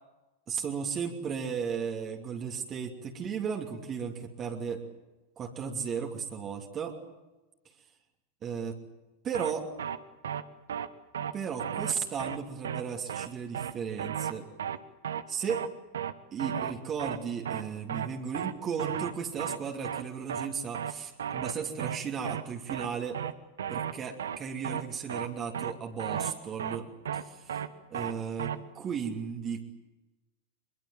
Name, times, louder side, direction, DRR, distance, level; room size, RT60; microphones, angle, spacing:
voice 1, 0.5-4.8 5.4-7.0 8.4-8.8 9.2-9.7 11.3-14.5 15.3-15.7 16.3-23.2 23.7-27.6 27.9-29.6, right 6 dB, 25° right, 2 dB, 2.8 m, -35 dB
sound 1, 9.3-9.5 9.8-10.0 10.2-10.4 10.7-10.9 11.1-11.3 11.6-11.9 12.2-12.4 12.6-12.8 13.1-13.3 13.5-13.7 14.0-14.3 14.6-14.8 15.0-15.2 15.5-15.7 15.9-16.1 16.4-16.7 17.0-17.2 17.5-17.6 17.9-18.1 18.3-18.5 18.8-19.1 19.4-19.6 19.8-20.0 20.3-20.5 20.7-20.9 21.2-21.5 21.8-22.0 22.2-22.4 22.7-22.9 23.1-23.3 23.6-23.9 24.2-24.4 24.6-24.8 25.1-25.3 25.5-25.7 26.0-26.3 26.6-26.8 27.1-27.2 27.5-27.7 27.9-28.1 28.4-28.6, right 9 dB, 65° right, 1.2 m, -34 dB
24.5 x 22.5 x 7.7 m, 1.1 s
figure-of-eight pair, 90°, 0 cm